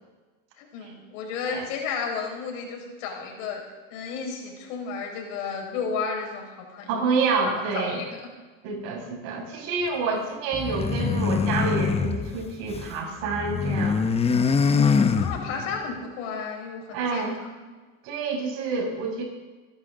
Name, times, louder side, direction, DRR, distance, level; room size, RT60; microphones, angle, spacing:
voice 1, 0.6-3.6 3.9-6.9 7.4-8.2 15.1-17.6, left 5 dB, 75° left, 0 dB, 5.3 m, -33 dB
voice 2, 6.9-8.0 8.6-14.4 16.9-17.4 18.0-19.2, right 4 dB, 65° right, -1 dB, 6.4 m, -28 dB
sound 1, 10.5-12.9 13.2-15.8, left 5 dB, 15° left, 0.8 m, -24 dB
27.0 x 12.0 x 3.8 m, 1.3 s
supercardioid pair, 125°, 38 cm